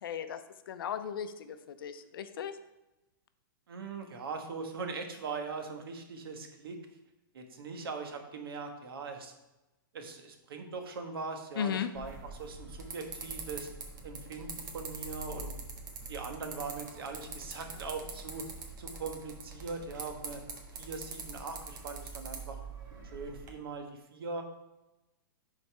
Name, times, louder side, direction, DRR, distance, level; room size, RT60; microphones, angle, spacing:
voice 1, 0.0-0.4 0.7-2.6 11.6-11.9, left 8 dB, 75° left, 10 dB, 0.6 m, -36 dB
voice 2, 3.7-6.8 7.3-9.3 9.9-13.7 14.0-15.5 16.1-18.5 18.8-20.4 20.8-22.6 23.1-24.4, right 4 dB, 85° right, 4 dB, 1.3 m, -41 dB
sound 1, 11.9-23.5, right 4 dB, 55° right, 1.3 m, -44 dB
11.0 x 4.1 x 3.3 m, 0.99 s
supercardioid pair, 170°, 12 cm